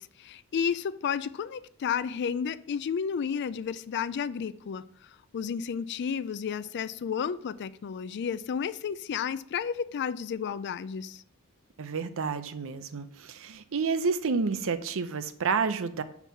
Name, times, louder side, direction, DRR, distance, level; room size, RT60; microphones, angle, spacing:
voice 1, 0.0-4.8 5.3-11.2, left 7 dB, 50° left, 0.4 m, -32 dB
voice 2, 11.8-16.0, right 5 dB, 65° right, 0.6 m, -30 dB
5.3 x 4.7 x 5.7 m
head